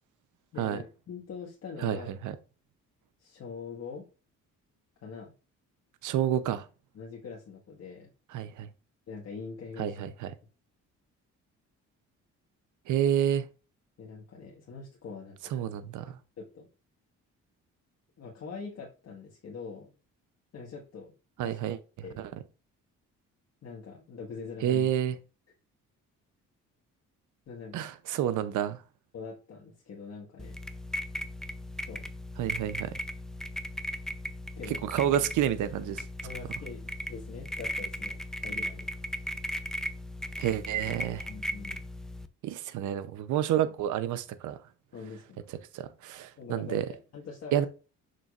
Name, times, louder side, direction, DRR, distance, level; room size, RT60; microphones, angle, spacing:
voice 1, 0.5-2.2 3.2-4.1 5.0-5.3 6.9-8.1 9.1-10.0 14.0-15.8 16.1-16.7 18.2-19.9 20.5-21.1 21.4-21.7 22.0-22.2 23.6-24.9 27.5-27.9 29.1-30.6 31.9-32.1 34.6-34.9 36.2-38.9 41.3-41.8 44.9-45.4 46.4-47.6, left 5 dB, 55° left, 1.8 m, -43 dB
voice 2, 6.0-6.6 8.3-8.7 9.8-10.3 12.9-13.5 15.5-16.2 21.4-21.8 22.2-22.3 24.6-25.2 27.7-28.8 32.4-32.9 34.8-36.0 40.4-41.3 42.4-44.6 45.7-46.8 47.5-47.7, right 10 dB, 80° right, 0.8 m, -29 dB
sound 1, 30.4-42.3, equal, ahead, 0.6 m, -37 dB
6.9 x 6.2 x 2.5 m
cardioid pair, 90°, 30 cm